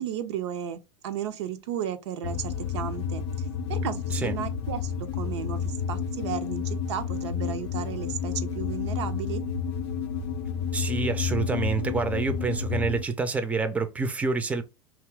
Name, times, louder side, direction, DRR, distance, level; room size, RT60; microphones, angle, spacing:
voice 1, 0.0-9.4, right 9 dB, 65° right, 0.4 m, -34 dB
sound 1, 2.2-13.0, left 6 dB, 65° left, 0.4 m, -30 dB
voice 2, 10.7-14.6, right 4 dB, 10° right, 0.5 m, -27 dB
2.8 x 2.4 x 3.2 m
figure-of-eight pair, 80°, 16 cm